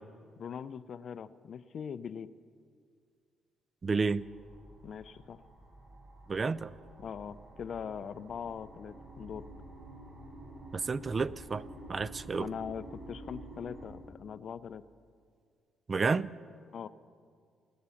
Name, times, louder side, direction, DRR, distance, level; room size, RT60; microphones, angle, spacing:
voice 1, 0.4-2.3 4.8-5.4 7.0-9.5 12.4-14.8 16.7-16.9, left 7 dB, 55° left, 0.5 m, -41 dB
voice 2, 3.8-4.3 6.3-6.7 10.7-11.6 11.9-12.5 15.9-16.3, right 4 dB, 35° right, 0.4 m, -30 dB
sound 1, 4.0-13.9, right 1 dB, 80° right, 4.7 m, -50 dB
18.5 x 9.4 x 7.1 m
cardioid pair, 90°, 0 cm